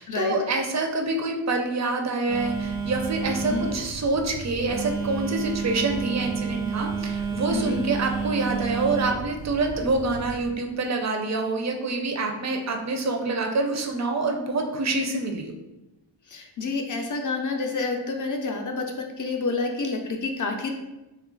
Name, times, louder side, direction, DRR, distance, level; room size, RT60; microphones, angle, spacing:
voice 1, 0.0-15.5, right 3 dB, 40° right, 3 dB, 0.4 m, -26 dB
Telephone, 2.3-10.5, right 5 dB, 80° right, 0.6 m, -31 dB
voice 2, 7.5-7.8 16.3-20.7, left 3 dB, 45° left, 3 dB, 0.4 m, -28 dB
3.0 x 2.3 x 3.7 m, 1.0 s
wide cardioid pair, 170°, 47 cm